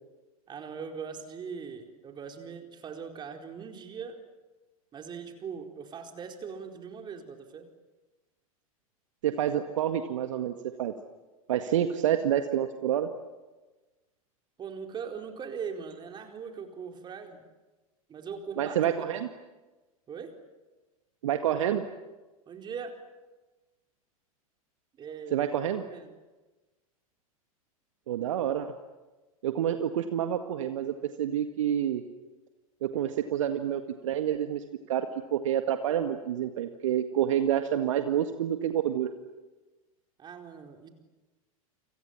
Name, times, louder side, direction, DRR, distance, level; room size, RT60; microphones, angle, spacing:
voice 1, 0.5-4.2 4.9-7.7 14.6-17.4 18.1-19.1 20.1-20.3 22.5-23.0 25.0-25.5 25.8-26.1 40.2-40.9, right 6 dB, 25° right, 4 dB, 4.4 m, -40 dB
voice 2, 9.2-10.5 10.8-10.9 11.5-13.1 18.6-19.3 21.2-21.8 25.3-25.8 28.1-28.7 29.4-32.0 32.8-39.1, right 10 dB, 60° right, 7 dB, 1.8 m, -28 dB
29.5 x 27.0 x 7.4 m, 1.2 s
figure-of-eight pair, 90°, 19 cm